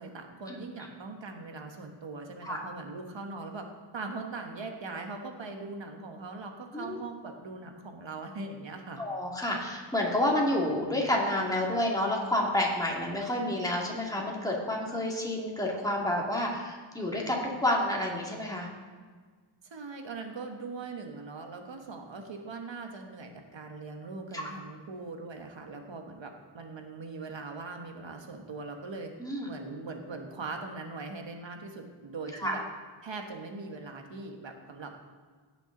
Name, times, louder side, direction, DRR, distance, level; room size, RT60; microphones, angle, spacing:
voice 1, 0.0-3.7 3.9-9.0 19.6-29.1 29.5-32.6 33.0-34.9, right 3 dB, 65° right, 4 dB, 1.3 m, -41 dB
voice 2, 9.0-18.7 24.3-24.4 29.2-29.5 32.4-32.6, left 1 dB, 10° left, -3 dB, 2.2 m, -29 dB
16.5 x 6.1 x 3.9 m, 1.5 s
wide cardioid pair, 90°, 47 cm